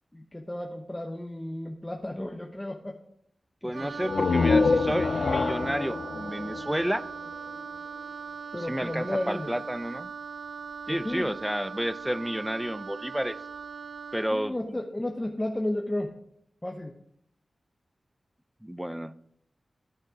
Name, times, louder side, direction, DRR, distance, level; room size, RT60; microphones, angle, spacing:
voice 1, 0.1-3.0 3.6-3.9 8.5-9.5 10.9-11.3 14.3-16.2 16.6-16.9, left 1 dB, 15° left, 3 dB, 0.9 m, -33 dB
voice 2, 3.6-7.1 8.7-10.1 10.9-13.4 14.1-14.5 18.6-19.1, equal, 5° right, 15 dB, 0.5 m, -31 dB
Wind instrument woodwind instrument, 3.7-14.4, right 5 dB, 80° right, 0.3 m, -40 dB
sound 1, 4.0-7.6, left 4 dB, 80° left, 0.4 m, -26 dB
12.0 x 6.3 x 5.1 m, 0.71 s
wide cardioid pair, 75°, 0 cm